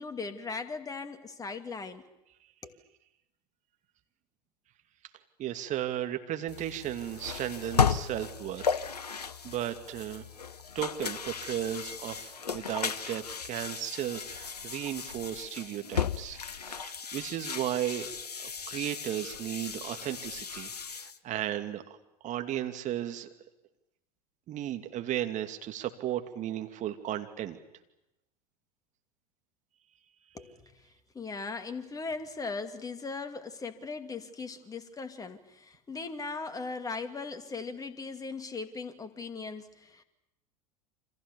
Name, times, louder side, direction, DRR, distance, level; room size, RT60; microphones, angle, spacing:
voice 1, 0.0-2.0 2.6-2.8 30.3-30.7 31.1-40.0, left 4 dB, 20° left, 8 dB, 2.4 m, -38 dB
voice 2, 5.4-10.3 10.7-16.4 16.7-18.1 18.4-22.0 22.2-23.3 24.5-27.6, right 11 dB, 40° right, 7 dB, 2.6 m, -35 dB
sound 1, 6.5-21.2, left 6 dB, 85° left, 1.0 m, -35 dB
28.5 x 26.0 x 7.1 m, 0.88 s
figure-of-eight pair, 85°, 20 cm